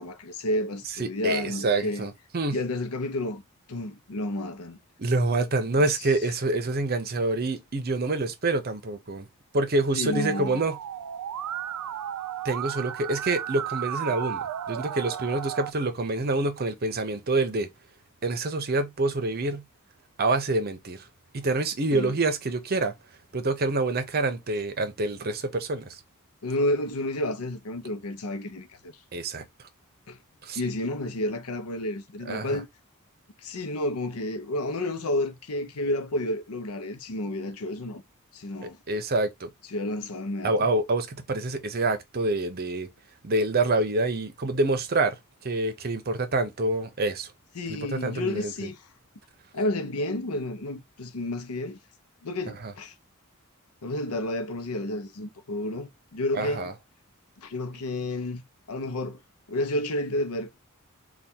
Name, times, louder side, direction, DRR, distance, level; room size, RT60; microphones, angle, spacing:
voice 1, 0.0-2.1 2.5-3.4 3.7-4.8 6.0-6.1 9.9-10.6 21.9-22.1 26.4-28.9 30.1-30.2 30.6-32.7 33.4-38.0 38.3-38.8 39.7-40.7 47.5-48.8 49.5-51.8 52.2-52.9 53.8-56.7 57.4-58.4 58.7-59.2 59.5-60.6, left 1 dB, 80° left, 0.7 m, -31 dB
voice 2, 1.0-2.6 5.0-9.3 9.5-10.8 12.4-17.7 18.2-19.6 20.2-21.0 21.3-22.9 23.3-26.0 29.1-29.4 30.4-30.6 32.3-32.6 38.6-39.5 40.4-42.9 43.2-45.2 45.4-47.3 47.7-48.5 52.6-52.7 56.3-56.7, right 2 dB, 45° right, 0.7 m, -27 dB
Musical instrument, 10.1-15.7, right 10 dB, 85° right, 0.3 m, -34 dB
3.5 x 2.4 x 4.2 m
head